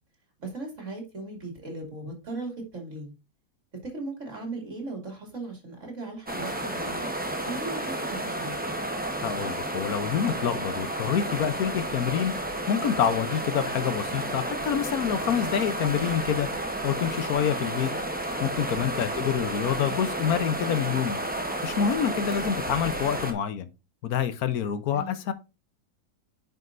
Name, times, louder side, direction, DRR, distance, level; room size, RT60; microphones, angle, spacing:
voice 1, 0.4-3.1 3.8-7.1 7.5-8.6 19.1-19.4 24.9-25.2, right 2 dB, 40° right, 2.9 m, -37 dB
sound 1, 6.3-23.3, right 1 dB, 10° right, 0.6 m, -32 dB
voice 2, 9.2-12.3 12.7-16.5 16.8-17.9 18.4-21.2 21.6-23.7 24.0-25.3, left 8 dB, 65° left, 1.1 m, -27 dB
9.3 x 5.4 x 2.5 m
omnidirectional pair, 1.9 m